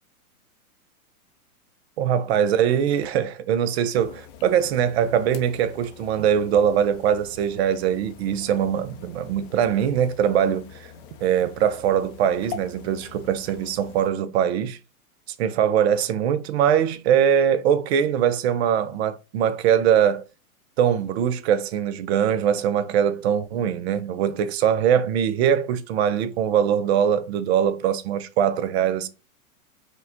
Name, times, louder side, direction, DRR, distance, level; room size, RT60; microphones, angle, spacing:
voice 1, 2.0-10.9 11.2-14.8 15.4-20.2 20.8-29.1, right 9 dB, 45° right, 0.5 m, -22 dB
sound 1, 3.9-14.1, left 8 dB, 35° left, 0.5 m, -44 dB
5.1 x 2.2 x 2.6 m
hypercardioid pair, 125°, 44 cm